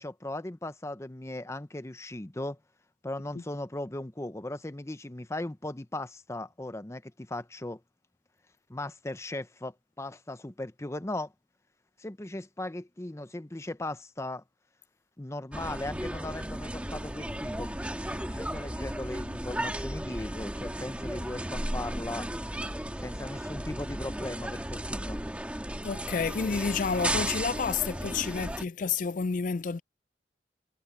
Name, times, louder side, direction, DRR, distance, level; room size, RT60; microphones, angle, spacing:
voice 1, 0.0-2.6 3.0-7.8 8.7-11.3 12.0-14.4 15.2-17.8 18.1-22.3 23.0-25.2, left 1 dB, 15° left, 0.7 m, -38 dB
sound 1, 15.5-28.6, right 1 dB, 5° right, 1.6 m, -35 dB
voice 2, 25.8-29.8, left 5 dB, 45° left, 0.4 m, -30 dB
head